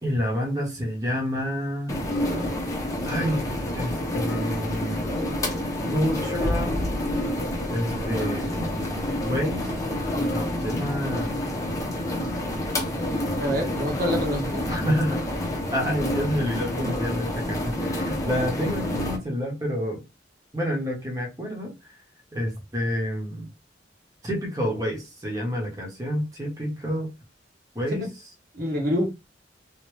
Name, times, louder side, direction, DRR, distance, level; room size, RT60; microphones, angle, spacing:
voice 1, 0.0-2.0 3.0-3.4 3.7-5.1 5.8-6.9 7.7-8.8 9.2-9.7 10.3-11.3 14.7-15.3 15.7-20.0 20.5-21.9 22.3-23.5 24.2-27.1 27.7-28.1, equal, 20° right, 1.1 m, -28 dB
sound 1, 1.9-19.2, left 1 dB, 20° left, 0.8 m, -28 dB
voice 2, 13.4-14.7 28.5-29.1, equal, 55° right, 1.1 m, -26 dB
3.1 x 2.8 x 3.2 m
head